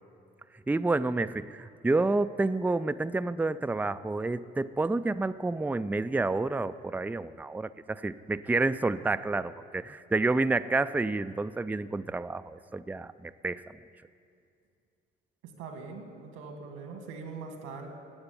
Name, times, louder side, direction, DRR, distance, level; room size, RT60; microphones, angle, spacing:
voice 1, 0.7-13.6, right 3 dB, 10° right, 11 dB, 0.4 m, -29 dB
voice 2, 15.6-17.9, right 4 dB, 90° right, 4 dB, 2.0 m, -42 dB
15.0 x 8.8 x 9.8 m, 2.4 s
supercardioid pair, 55°, 21 cm